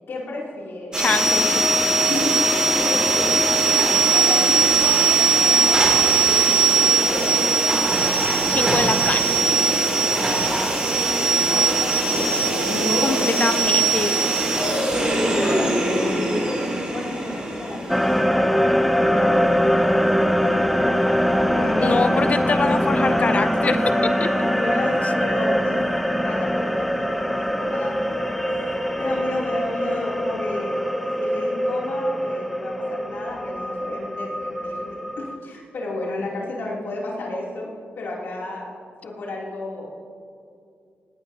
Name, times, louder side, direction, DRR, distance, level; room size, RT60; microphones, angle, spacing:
voice 1, 0.1-1.0 2.1-3.3 4.1-7.4 10.0-10.5 12.1-13.5 15.0-18.7 19.0-22.2 24.5-30.8 31.2-37.7 38.0-38.7 39.0-39.9, left 2 dB, 75° left, -5 dB, 3.0 m, -32 dB
sound 1, 0.9-18.2, right 3 dB, 20° right, 3.0 m, -20 dB
voice 2, 1.0-1.7 8.5-9.6 13.0-14.2 21.8-23.8 24.2-24.5, left 4 dB, 40° left, 10 dB, 0.5 m, -24 dB
sound 2, 17.9-35.3, equal, ahead, 0.6 m, -22 dB
18.0 x 18.0 x 2.8 m, 2.4 s
wide cardioid pair, 135°, 4 cm